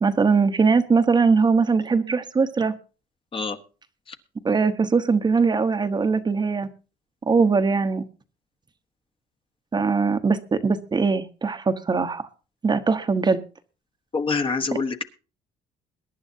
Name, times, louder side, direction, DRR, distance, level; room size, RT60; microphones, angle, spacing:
voice 1, 0.0-2.7 4.4-6.7 7.3-8.0 9.7-12.3 12.6-13.4, right 4 dB, 25° right, 8 dB, 1.0 m, -21 dB
voice 2, 14.1-15.0, left 4 dB, 30° left, 7 dB, 1.2 m, -26 dB
22.0 x 10.5 x 2.7 m, 0.34 s
cardioid pair, 110°, 17 cm